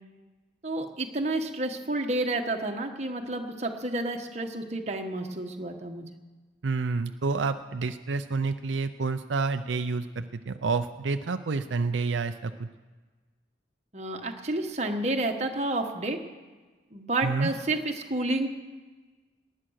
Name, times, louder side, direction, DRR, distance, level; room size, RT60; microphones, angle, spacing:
voice 1, 0.6-6.1 13.9-16.2 16.9-18.5, right 2 dB, 35° right, 3 dB, 1.3 m, -30 dB
voice 2, 6.6-12.7 17.2-17.5, right 4 dB, 80° right, 8 dB, 0.5 m, -29 dB
19.0 x 10.0 x 6.5 m, 1.3 s
head